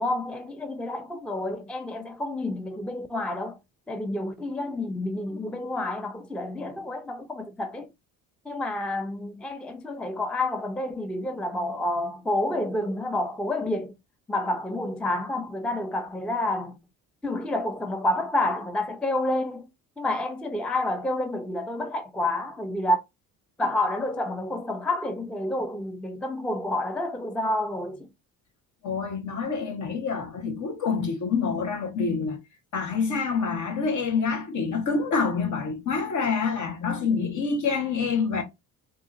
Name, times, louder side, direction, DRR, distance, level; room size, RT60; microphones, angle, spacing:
voice 1, 0.0-3.6 3.9-7.9 8.5-13.9 14.3-16.8 17.2-19.7 20.0-23.0 23.6-28.1, left 1 dB, 5° left, 0.4 m, -29 dB
voice 2, 28.8-32.4 32.7-38.4, left 5 dB, 55° left, 1.4 m, -27 dB
3.7 x 2.8 x 2.5 m
cardioid pair, 100°, 35 cm